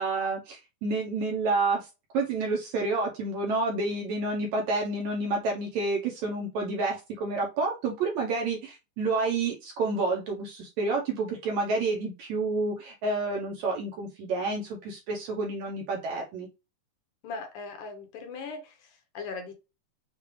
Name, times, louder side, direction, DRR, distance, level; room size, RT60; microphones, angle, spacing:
voice 1, 0.0-16.5, right 3 dB, 75° right, 0 dB, 1.7 m, -29 dB
voice 2, 17.2-19.5, left 4 dB, 70° left, 5 dB, 2.2 m, -39 dB
6.7 x 2.4 x 3.1 m, 0.27 s
omnidirectional pair, 4.0 m